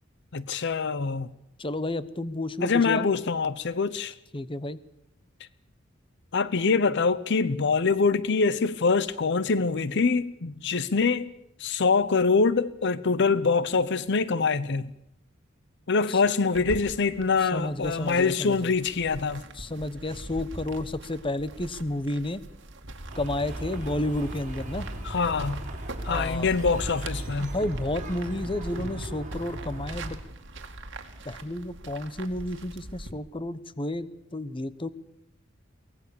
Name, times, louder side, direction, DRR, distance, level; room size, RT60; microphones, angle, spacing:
voice 1, 0.3-1.3 2.6-4.1 6.3-11.3 11.6-14.9 15.9-19.4 25.0-25.6 26.0-27.5, left 4 dB, 60° left, 0.7 m, -24 dB
voice 2, 1.6-3.0 4.3-4.8 16.1-16.2 17.4-18.7 19.6-22.4 23.1-24.9 26.1-26.5 27.4-30.2 31.2-34.9, left 1 dB, 25° left, 1.0 m, -31 dB
sound 1, 16.5-33.1, right 2 dB, 65° right, 2.3 m, -43 dB
sound 2, 23.1-30.2, right 1 dB, 40° right, 4.8 m, -37 dB
23.5 x 18.5 x 7.0 m
head